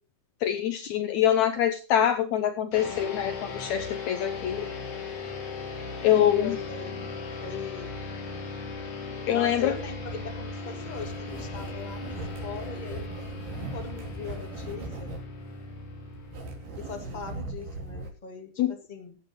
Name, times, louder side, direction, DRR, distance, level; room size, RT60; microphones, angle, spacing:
voice 1, 0.4-4.7 6.0-6.6 9.3-9.7 18.6-18.7, left 10 dB, 75° left, 9 dB, 1.9 m, -24 dB
sound 1, 2.7-17.5, left 3 dB, 55° left, 4.1 m, -38 dB
voice 2, 6.4-7.9 9.3-13.2 13.7-15.1 16.7-19.2, left 5 dB, 15° left, 3 dB, 1.9 m, -40 dB
sound 2, 10.1-18.1, right 2 dB, 80° right, 4.4 m, -40 dB
21.0 x 8.4 x 3.1 m, 0.36 s
omnidirectional pair, 3.8 m